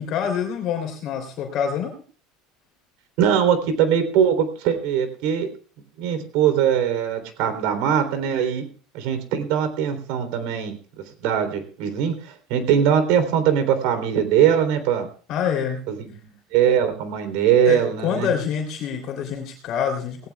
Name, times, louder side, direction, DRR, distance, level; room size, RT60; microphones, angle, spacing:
voice 1, 0.0-1.9 15.3-15.9 17.6-20.3, left 8 dB, 40° left, 3 dB, 3.2 m, -26 dB
voice 2, 3.2-5.5 6.0-8.7 8.9-10.8 11.2-12.1 12.5-15.1 15.9-18.3, right 8 dB, 65° right, 9 dB, 3.5 m, -21 dB
19.0 x 18.0 x 2.3 m, 0.41 s
cardioid pair, 170°, 0 cm